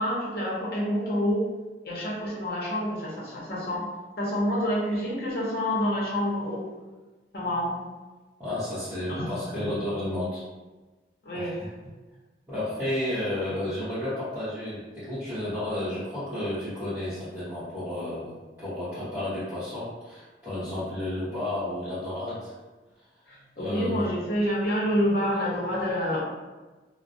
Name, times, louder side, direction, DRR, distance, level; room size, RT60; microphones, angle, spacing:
voice 1, 0.0-1.5 1.8-3.9 4.2-6.7 7.3-7.8 9.1-9.7 11.2-11.6 23.3-26.2, equal, 60° left, -5 dB, 0.7 m, -28 dB
voice 2, 8.4-10.4 11.3-11.7 12.5-22.5 23.6-24.0, left 1 dB, 15° right, -17 dB, 0.8 m, -32 dB
2.3 x 2.0 x 2.6 m, 1.2 s
head